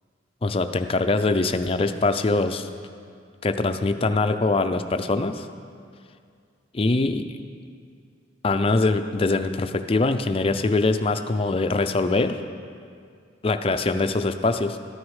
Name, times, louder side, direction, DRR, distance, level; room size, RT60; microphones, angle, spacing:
voice 1, 0.4-2.7 3.4-5.5 6.7-7.3 8.4-12.4 13.4-14.8, left 3 dB, 30° left, 8 dB, 0.5 m, -23 dB
13.5 x 9.4 x 4.9 m, 2.2 s
head